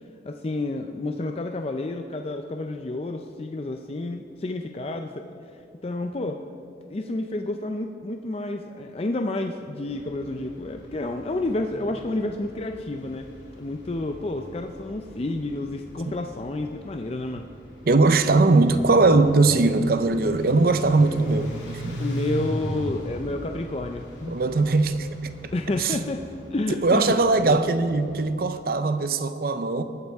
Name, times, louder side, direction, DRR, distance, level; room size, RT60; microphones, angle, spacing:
voice 1, 0.3-5.2 5.8-6.4 6.9-13.3 13.6-17.4 22.0-24.3 25.5-26.2 26.5-27.6, left 2 dB, 30° left, 0.4 m, -30 dB
sound 1, 9.8-28.2, equal, 75° left, 3.0 m, -40 dB
voice 2, 17.9-22.0 24.3-25.5 25.8-26.0 26.8-29.8, right 3 dB, 50° right, 0.5 m, -20 dB
19.5 x 9.6 x 3.5 m
head